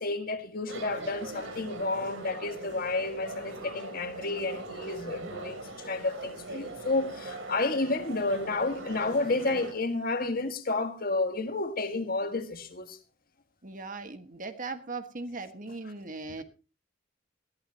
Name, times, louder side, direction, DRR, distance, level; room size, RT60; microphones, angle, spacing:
voice 1, 0.0-13.0, left 3 dB, 50° left, 1.7 m, -31 dB
sound 1, 0.7-9.7, right 2 dB, 85° right, 3.0 m, -41 dB
voice 2, 13.6-16.4, right 3 dB, 45° right, 1.5 m, -39 dB
20.0 x 14.0 x 2.9 m
head